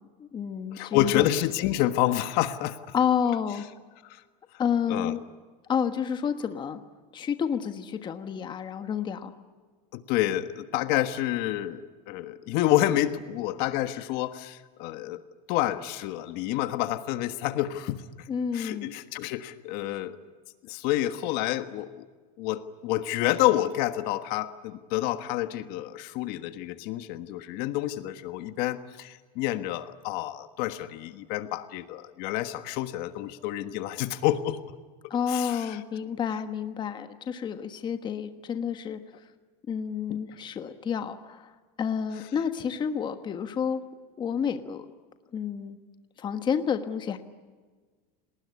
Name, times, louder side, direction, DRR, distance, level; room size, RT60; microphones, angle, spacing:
voice 1, 0.2-1.3 2.9-3.7 4.6-5.2 5.7-6.8 7.1-9.3 18.3-18.9 35.1-39.0 39.7-41.5 41.8-43.8 44.2-44.9 45.3-45.8 46.2-47.2, left 7 dB, 20° left, 8 dB, 1.4 m, -29 dB
voice 2, 0.7-2.9 4.0-4.2 4.9-5.2 9.9-15.2 15.5-18.3 18.5-20.2 20.6-22.1 22.4-34.6 35.3-35.8 40.1-40.2, left 14 dB, 50° left, 10 dB, 1.5 m, -28 dB
29.5 x 19.5 x 9.7 m, 1.5 s
supercardioid pair, 155°, 20 cm